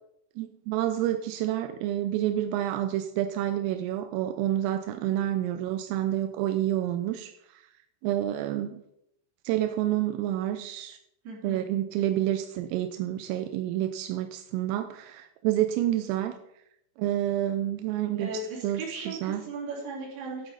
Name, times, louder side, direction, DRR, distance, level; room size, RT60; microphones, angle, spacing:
voice 1, 0.4-7.3 8.0-8.8 9.5-11.0 11.4-16.4 17.0-18.3 18.6-18.8 19.1-19.4, right 12 dB, 90° right, 8 dB, 3.3 m, -28 dB
voice 2, 11.2-11.6 18.2-20.5, right 3 dB, 55° right, -4 dB, 4.8 m, -37 dB
11.5 x 8.0 x 4.0 m, 0.77 s
omnidirectional pair, 5.8 m